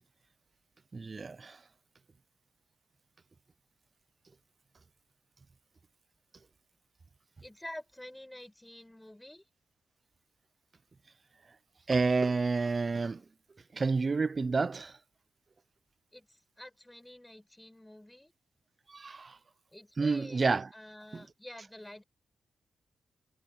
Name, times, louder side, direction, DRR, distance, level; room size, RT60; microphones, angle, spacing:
voice 1, 0.9-1.6 11.9-13.2 13.7-15.0 18.9-19.4 20.0-20.7 21.1-21.2, right 4 dB, 35° right, 0.4 m, -29 dB
voice 2, 7.4-9.4 16.1-18.3 19.7-22.0, left 1 dB, 10° left, 5.0 m, -48 dB
wide cardioid pair, 110°, 0 cm